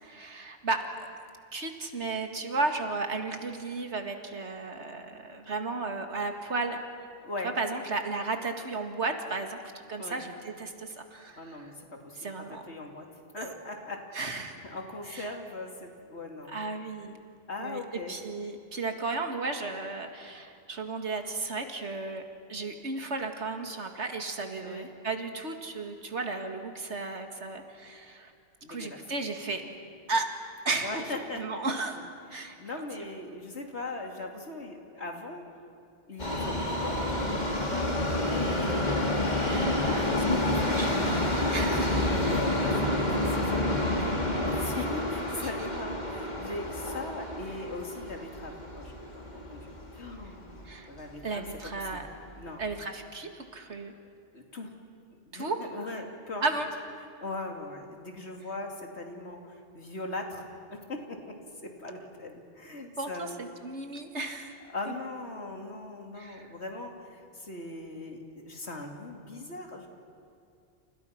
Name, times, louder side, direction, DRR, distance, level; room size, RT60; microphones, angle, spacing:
voice 1, 0.0-1.1 1.5-6.8 7.6-9.6 9.9-11.7 12.2-12.6 13.4-13.6 14.1-14.5 15.1-15.3 16.5-17.2 17.6-17.8 18.1-22.2 22.5-28.3 28.7-29.6 30.1-30.3 30.7-31.0 31.4-32.0 32.3-32.6 39.4-42.1 43.8-44.7 45.4-45.5 50.6-50.9 51.2-52.1 52.6-53.9 55.3-55.6 56.4-56.7 63.0-64.6 66.2-66.5, right 3 dB, 80° right, 5 dB, 2.4 m, -34 dB
voice 2, 11.4-13.1 13.3-14.1 14.6-16.5 17.5-18.2 24.6-24.9 28.6-29.0 29.6-29.7 30.8-31.5 31.9-32.0 32.3-35.4 36.1-39.3 39.7-40.1 41.9-51.4 51.7-52.0 52.4-52.6 54.3-54.7 55.3-56.4 57.2-60.4 60.7-61.4 61.6-63.3 64.7-69.9, left 2 dB, 75° left, 2 dB, 3.1 m, -40 dB
Subway metro underground, 36.2-50.3 50.6-50.7 51.6-51.7 51.9-52.0 52.7-52.8, left 1 dB, 40° left, 2.8 m, -29 dB
29.5 x 29.0 x 5.9 m, 2.4 s
omnidirectional pair, 1.2 m